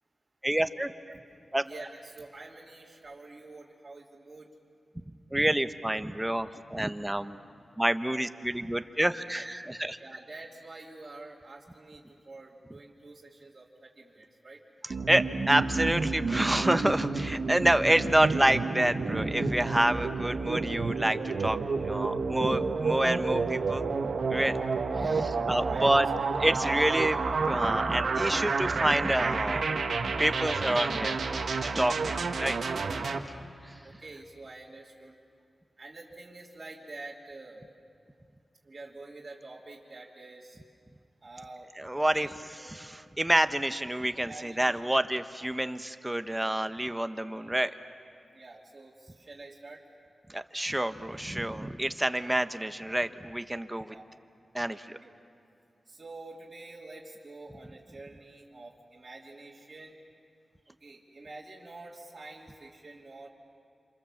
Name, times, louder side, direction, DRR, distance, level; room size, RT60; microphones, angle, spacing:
voice 1, 0.4-0.9 1.5-1.6 5.3-7.4 7.8-10.0 14.8-23.9 24.3-24.6 24.9-26.1 26.4-29.6 30.1-31.2 31.6-32.6 33.6-33.8 41.8-47.7 50.3-53.9 54.5-55.0, right 1 dB, 10° right, 9 dB, 1.0 m, -28 dB
voice 2, 1.6-4.5 10.0-14.6 25.0-25.4 25.7-26.1 31.9-32.0 33.8-35.1 35.8-37.6 38.6-40.6 41.2-42.7 44.1-44.8 48.3-49.8 52.2-52.3 53.9-54.0 55.0-55.1 55.9-60.0 60.7-63.3, right 2 dB, 35° right, -6 dB, 2.9 m, -47 dB
sound 1, 14.9-33.2, right 4 dB, 75° right, 1.4 m, -30 dB
27.5 x 27.0 x 7.4 m, 2.5 s
wide cardioid pair, 75°, 0 cm